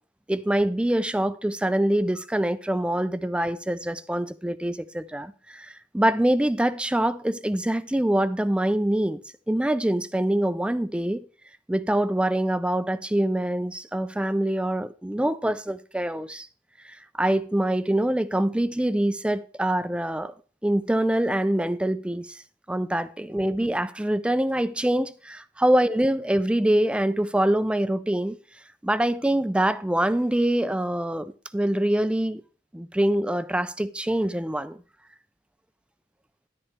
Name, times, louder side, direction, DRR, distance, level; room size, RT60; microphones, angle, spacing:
voice 1, 0.3-9.2 9.5-11.3 11.7-16.5 16.8-20.3 20.6-22.4 22.7-28.4 28.8-32.4 32.7-34.8, right 1 dB, 5° right, 0.4 m, -25 dB
11.0 x 10.0 x 3.3 m
head